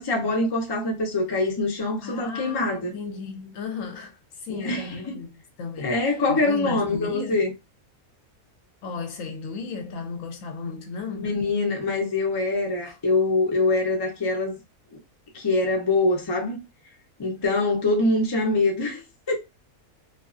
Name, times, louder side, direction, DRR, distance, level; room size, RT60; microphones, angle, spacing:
voice 1, 0.0-2.9 4.5-5.2 5.8-7.5 11.2-14.5 15.3-16.6 17.2-19.4, left 2 dB, 35° left, 0.4 m, -24 dB
voice 2, 2.0-5.3 5.6-7.5 8.8-11.3 12.8-13.0, left 4 dB, 70° left, 0.9 m, -35 dB
2.5 x 2.3 x 2.4 m
omnidirectional pair, 1.5 m